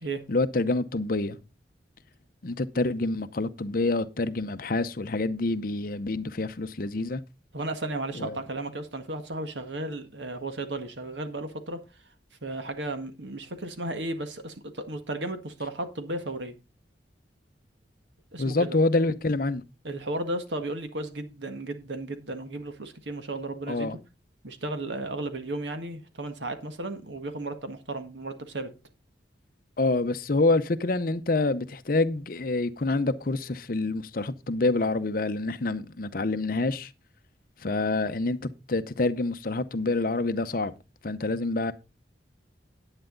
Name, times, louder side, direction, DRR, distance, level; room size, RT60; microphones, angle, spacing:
voice 1, 0.3-1.4 2.4-7.2 8.2-8.4 18.4-19.6 23.7-24.0 29.8-36.9 37.6-40.7 41.0-41.7, left 2 dB, 50° left, 0.7 m, -27 dB
voice 2, 7.5-11.8 12.4-16.6 18.3-18.8 19.8-24.0 24.4-28.7, right 2 dB, 85° right, 1.7 m, -34 dB
10.0 x 8.9 x 3.9 m
head